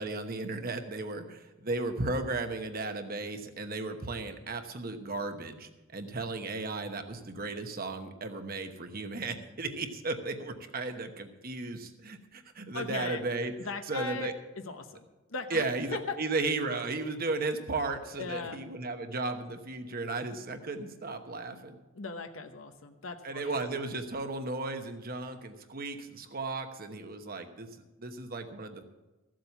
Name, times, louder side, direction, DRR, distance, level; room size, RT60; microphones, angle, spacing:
voice 1, 0.0-13.5 13.9-14.3 15.5-21.8 23.2-27.7 28.0-28.8, right 3 dB, 45° right, 7 dB, 1.1 m, -35 dB
voice 2, 12.7-13.2 13.6-16.2 18.2-18.6 21.9-23.6, left 4 dB, 80° left, 7 dB, 1.0 m, -39 dB
14.5 x 7.6 x 7.0 m, 1.1 s
head